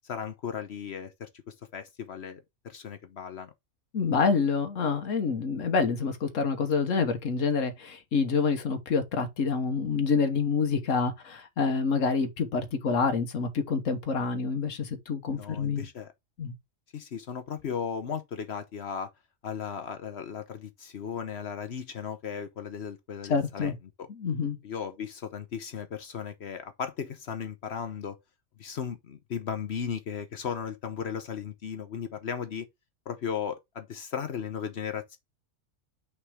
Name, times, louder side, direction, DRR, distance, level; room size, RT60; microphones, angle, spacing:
voice 1, 0.0-3.5 15.3-16.1 16.9-19.1 19.4-23.7 24.0-24.1 24.6-28.2 28.6-32.7 33.1-35.2, left 7 dB, 60° left, 1.0 m, -36 dB
voice 2, 3.9-15.8 16.4-16.5 23.3-23.7 24.1-24.6, left 5 dB, 75° left, 1.5 m, -27 dB
5.8 x 4.6 x 3.5 m
omnidirectional pair, 1.3 m